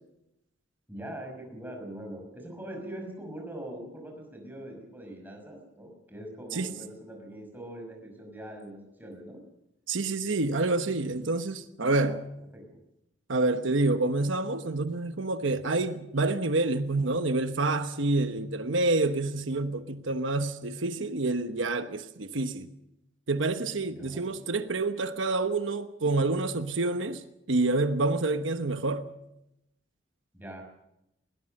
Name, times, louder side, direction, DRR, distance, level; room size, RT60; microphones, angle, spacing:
voice 1, 0.9-9.4 12.0-12.2 12.5-12.8 23.9-24.3 30.3-30.6, right 1 dB, 10° right, 5.8 m, -42 dB
voice 2, 9.9-12.2 13.3-22.7 23.3-29.0, right 2 dB, 85° right, 1.1 m, -28 dB
21.0 x 18.5 x 6.6 m
head